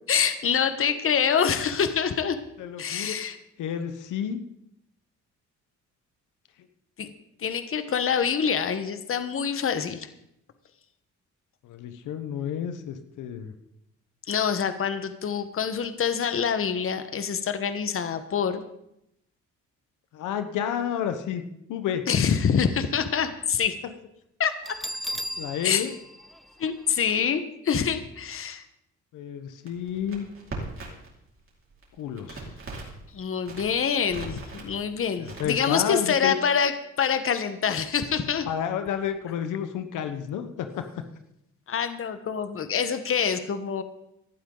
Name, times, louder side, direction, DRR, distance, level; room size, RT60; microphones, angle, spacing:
voice 1, 0.1-2.4 2.8-3.4 7.0-7.1 7.4-10.1 14.3-18.7 22.1-23.8 24.4-24.8 25.6-25.8 26.6-28.6 33.1-38.5 41.7-43.8, left 7 dB, 45° left, 10 dB, 1.3 m, -26 dB
voice 2, 2.6-3.2 3.6-4.4 11.6-13.5 20.1-21.4 21.7-22.0 25.4-25.9 29.1-30.2 32.0-32.4 35.2-36.3 38.5-41.0, left 9 dB, 85° left, 8 dB, 1.2 m, -30 dB
Bell, 24.6-27.4, equal, ahead, 0.5 m, -36 dB
Crackle, 29.7-31.1 31.4-33.0 33.4-34.7 35.2-35.8, right 3 dB, 45° right, 4.8 m, -39 dB
17.5 x 12.0 x 3.9 m, 0.80 s
cardioid pair, 90°, 30 cm